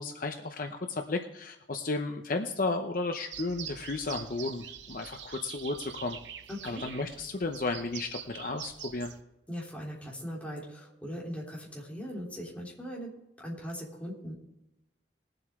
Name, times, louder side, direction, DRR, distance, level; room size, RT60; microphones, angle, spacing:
voice 1, 0.0-6.2 6.6-9.1, left 3 dB, 50° left, 4 dB, 0.8 m, -33 dB
sound 1, 3.3-9.2, right 8 dB, 85° right, 0.9 m, -44 dB
voice 2, 6.5-6.9 9.5-13.1 13.4-14.3, equal, 10° left, -4 dB, 3.4 m, -39 dB
21.0 x 7.9 x 3.7 m, 0.89 s
head